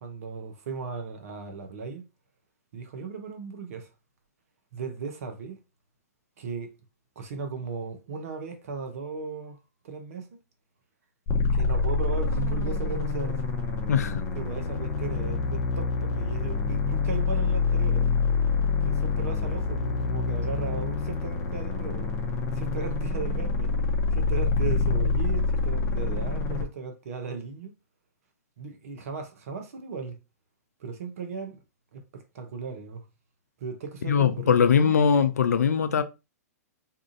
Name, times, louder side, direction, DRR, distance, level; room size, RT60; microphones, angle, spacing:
voice 1, 0.0-2.0 2.7-3.9 4.7-5.6 6.4-6.7 7.2-9.6 9.8-10.3 11.5-13.4 14.3-18.2 18.8-22.1 22.5-23.7 24.1-27.7 28.6-30.2 30.8-31.6 31.9-33.0 33.6-35.0, right 5 dB, 60° right, 0.7 m, -36 dB
sound 1, 11.3-26.6, left 4 dB, 30° left, 0.7 m, -26 dB
voice 2, 13.9-14.2 34.1-36.0, left 7 dB, 75° left, 0.4 m, -21 dB
2.7 x 2.4 x 2.5 m
hypercardioid pair, 115°, 9 cm